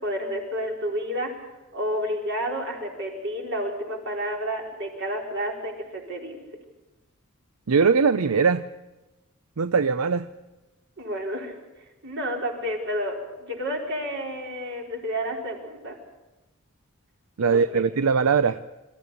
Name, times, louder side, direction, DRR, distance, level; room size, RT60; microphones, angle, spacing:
voice 1, 0.0-1.3 1.7-6.4 11.0-11.5 12.0-15.9 17.5-17.8, equal, 60° right, 0 dB, 4.7 m, -30 dB
voice 2, 7.7-8.6 9.6-10.3 17.4-18.6, right 5 dB, 85° right, 12 dB, 0.6 m, -21 dB
25.0 x 14.0 x 8.5 m, 1.1 s
head